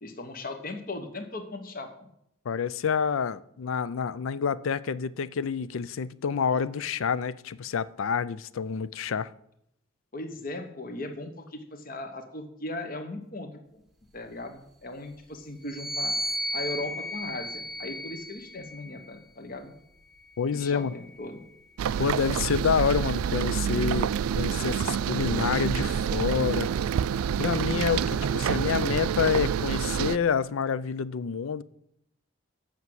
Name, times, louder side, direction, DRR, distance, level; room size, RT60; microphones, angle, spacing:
voice 1, 0.0-2.1 10.1-13.8 14.1-16.2 16.5-19.7 20.5-21.4, left 2 dB, 40° left, 1.0 m, -38 dB
voice 2, 2.5-9.3 20.4-20.9 22.0-24.1 24.3-26.8 27.4-31.6, left 6 dB, 75° left, 0.4 m, -28 dB
sound 1, 15.6-19.2 20.0-21.6, left 1 dB, ahead, 1.0 m, -35 dB
sound 2, 21.8-30.2, right 8 dB, 90° right, 0.3 m, -27 dB
8.3 x 5.9 x 7.7 m
head